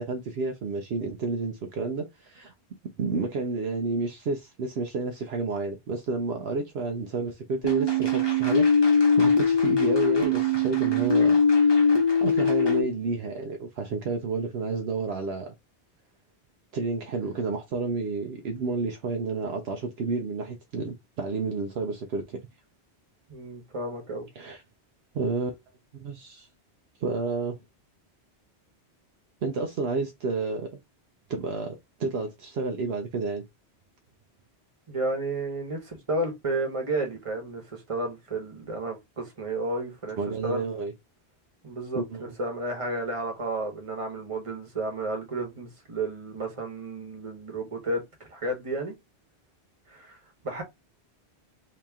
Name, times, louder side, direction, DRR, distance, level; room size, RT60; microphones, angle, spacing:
voice 1, 0.0-2.5 3.0-8.7 9.2-11.9 12.2-15.5 16.7-22.4 24.4-24.6 25.1-25.5 26.0-26.5 27.0-27.6 29.4-30.7 31.3-31.7 32.0-33.4 40.2-40.9 42.0-42.3, right 4 dB, 70° right, 0.9 m, -30 dB
sound 1, 7.6-12.8, left 3 dB, 25° left, 0.9 m, -21 dB
voice 2, 23.3-24.3 34.9-40.6 41.6-48.9 49.9-50.1 50.4-50.6, right 2 dB, 30° right, 1.1 m, -32 dB
2.9 x 2.9 x 3.5 m
omnidirectional pair, 1.1 m